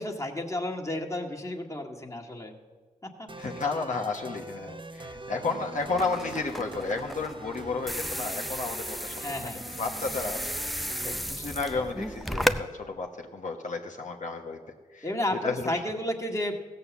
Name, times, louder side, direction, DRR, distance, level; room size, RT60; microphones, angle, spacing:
voice 1, 0.0-2.5 3.0-3.3 9.2-9.6 15.0-16.6, left 1 dB, 20° left, 1 dB, 1.9 m, -32 dB
sound 1, 3.3-11.9, right 3 dB, 35° right, 1.0 m, -43 dB
voice 2, 3.4-9.5 9.8-14.6 14.9-15.1 15.4-15.8, left 3 dB, 55° left, 0 dB, 1.2 m, -33 dB
sound 2, 5.8-12.6, equal, ahead, 0.6 m, -34 dB
15.0 x 6.8 x 7.1 m, 1.4 s
supercardioid pair, 40°, 15 cm